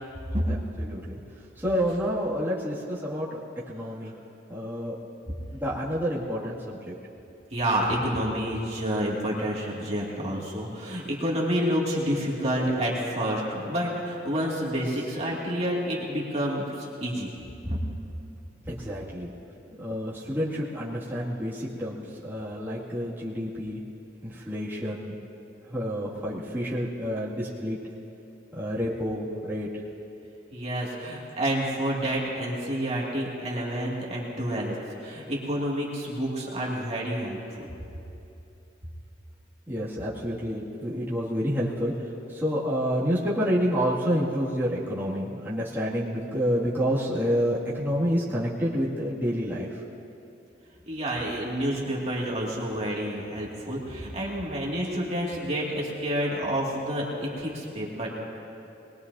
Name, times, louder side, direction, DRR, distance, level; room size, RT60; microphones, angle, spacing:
voice 1, 0.5-1.2 1.6-4.1 4.5-5.0 5.5-6.9 18.7-19.3 19.8-23.8 24.2-25.1 25.7-27.8 28.5-29.7 39.7-41.9 42.3-49.8, equal, 10° right, -9 dB, 2.2 m, -29 dB
voice 2, 7.5-17.3 17.6-17.8 30.5-37.7 50.9-58.1, equal, 35° right, -4 dB, 2.3 m, -29 dB
23.0 x 20.5 x 2.7 m, 2.8 s
head